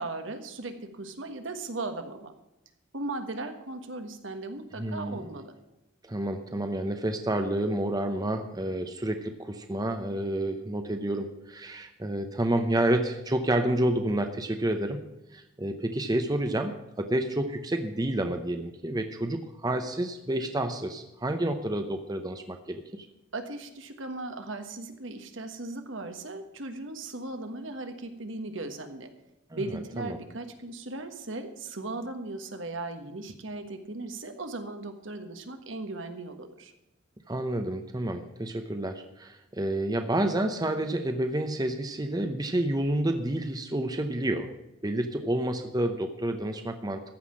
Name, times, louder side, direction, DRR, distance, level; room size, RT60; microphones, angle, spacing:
voice 1, 0.0-2.3 2.9-5.5 23.3-29.1 29.5-36.7, right 2 dB, 70° right, 7 dB, 1.4 m, -37 dB
voice 2, 4.8-5.2 6.0-15.0 15.3-23.1 29.5-30.2 37.3-44.5 44.8-47.1, right 1 dB, 20° right, 6 dB, 0.8 m, -29 dB
14.5 x 5.7 x 8.6 m, 0.91 s
head